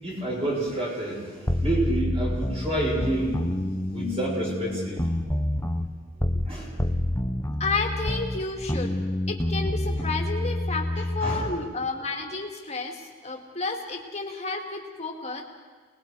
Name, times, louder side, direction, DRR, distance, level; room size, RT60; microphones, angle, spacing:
voice 1, 0.0-3.4 3.9-5.0 6.4-6.7 11.2-11.5, right 1 dB, 30° right, -4 dB, 6.4 m, -29 dB
sound 1, 1.5-6.5 6.8-11.6, left 1 dB, 15° left, 0.9 m, -28 dB
voice 2, 7.6-8.9 9.3-15.4, left 3 dB, 30° left, 1 dB, 2.5 m, -31 dB
28.5 x 20.5 x 4.9 m, 1.5 s
head